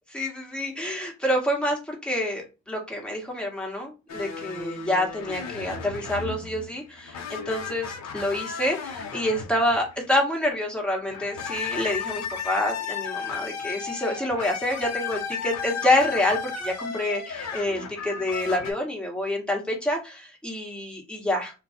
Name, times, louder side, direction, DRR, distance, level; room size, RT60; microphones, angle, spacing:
voice 1, 0.1-21.5, left 1 dB, 5° left, -1 dB, 1.5 m, -27 dB
sound 1, 4.1-10.1 11.1-18.7, left 6 dB, 65° left, 0.9 m, -34 dB
2.5 x 2.3 x 4.1 m, 0.28 s
cardioid pair, 90°, 30 cm